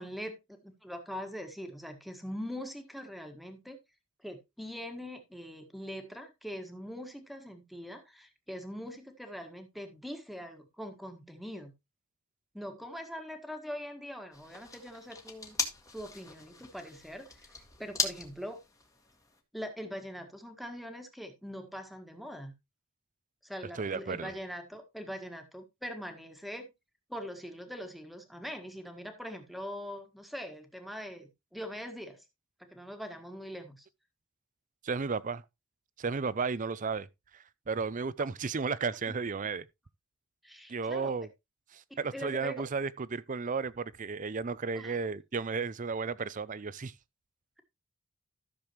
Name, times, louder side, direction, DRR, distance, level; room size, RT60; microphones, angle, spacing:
voice 1, 0.0-3.8 4.2-11.7 12.5-15.6 15.9-17.4 17.8-18.6 19.5-22.5 23.4-26.7 27.1-32.2 32.6-33.8 39.1-39.2 40.4-41.1 41.9-42.6 44.7-45.0, equal, ahead, 1.6 m, -42 dB
sound 1, 14.3-19.4, left 4 dB, 15° left, 1.5 m, -39 dB
voice 2, 23.8-24.3 34.8-35.4 36.0-37.1 37.3-39.6 40.7-41.3 41.7-46.9, right 4 dB, 35° right, 0.5 m, -33 dB
13.5 x 6.9 x 3.0 m
head